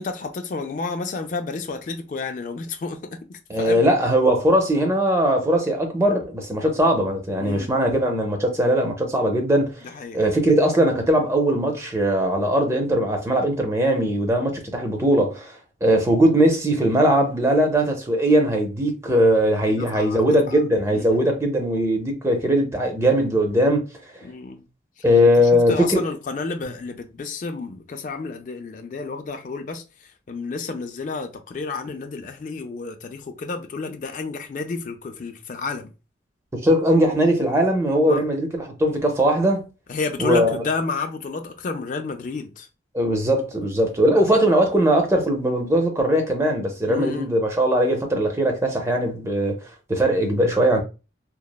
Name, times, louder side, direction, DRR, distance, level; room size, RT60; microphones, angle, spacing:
voice 1, 0.0-3.8 7.4-7.7 9.8-10.2 19.7-20.6 20.9-21.2 24.2-24.7 25.0-25.1 25.4-35.9 38.1-38.2 39.9-42.7 46.9-47.3, left 4 dB, 45° left, 0.3 m, -31 dB
voice 2, 3.5-9.8 10.1-23.9 25.0-26.0 36.5-39.7 40.2-40.6 42.9-49.6 49.9-50.8, equal, 15° right, 0.5 m, -20 dB
3.0 x 2.0 x 2.2 m
head